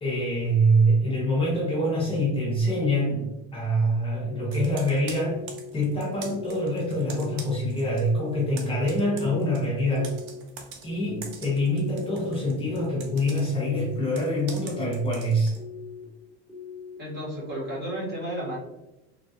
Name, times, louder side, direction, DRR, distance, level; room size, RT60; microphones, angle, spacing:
voice 1, 0.0-5.4 5.7-10.2 10.8-15.5, equal, 15° left, -6 dB, 0.6 m, -25 dB
sound 1, 4.3-4.8 5.2-5.7 6.2-6.6 7.1-7.6 8.0-8.5 9.0-9.5 9.9-10.4 10.9-11.3 11.8-12.3 12.7-13.2 13.7-14.2 14.6-15.1 15.6-16.1 16.5-17.0, left 6 dB, 5° right, 1.0 m, -41 dB
Computer keyboard, 4.5-8.1 8.4-15.6, right 5 dB, 85° right, 0.7 m, -44 dB
voice 2, 17.0-18.6, right 1 dB, 30° right, -5 dB, 1.2 m, -32 dB
3.1 x 2.3 x 2.6 m, 0.96 s
cardioid pair, 150°, 32 cm